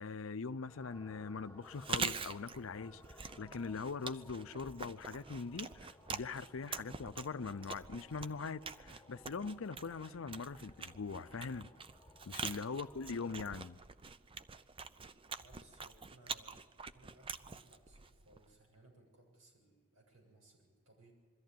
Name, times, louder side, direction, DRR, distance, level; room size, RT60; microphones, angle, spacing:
voice 1, 0.0-11.7 12.3-13.8, left 4 dB, 65° left, 0.6 m, -42 dB
sound 1, 0.6-13.7, left 1 dB, 15° left, 1.4 m, -60 dB
Chewing mastication, 1.7-18.5, right 5 dB, 25° right, 0.6 m, -45 dB
voice 2, 15.4-21.1, right 2 dB, 75° right, 7.7 m, -64 dB
22.5 x 14.0 x 9.3 m
head